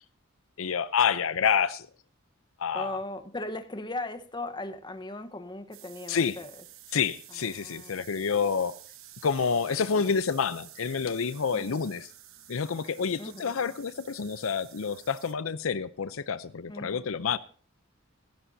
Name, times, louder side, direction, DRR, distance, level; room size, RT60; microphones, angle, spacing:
voice 1, 0.6-1.9 2.6-2.9 6.1-6.4 6.9-8.7 9.2-12.1 12.5-17.4, left 6 dB, 80° left, 0.6 m, -28 dB
voice 2, 2.7-6.6 7.3-8.1 9.5-10.1 11.5-11.8 13.2-13.6 16.7-17.1, left 2 dB, 20° left, 1.0 m, -38 dB
sound 1, 5.7-15.3, right 13 dB, 80° right, 1.0 m, -51 dB
16.0 x 15.5 x 2.7 m
head